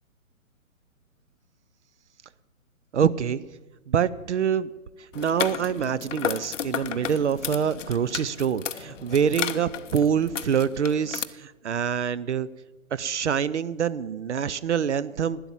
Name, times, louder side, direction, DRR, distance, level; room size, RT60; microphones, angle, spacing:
voice 1, 2.9-3.4 3.9-4.7 5.1-12.5 12.9-15.4, right 7 dB, 55° right, 18 dB, 0.6 m, -25 dB
sound 1, 5.1-11.2, left 8 dB, 60° left, 0.7 m, -33 dB
11.5 x 10.0 x 7.4 m, 1.2 s
figure-of-eight pair, 130°, 42 cm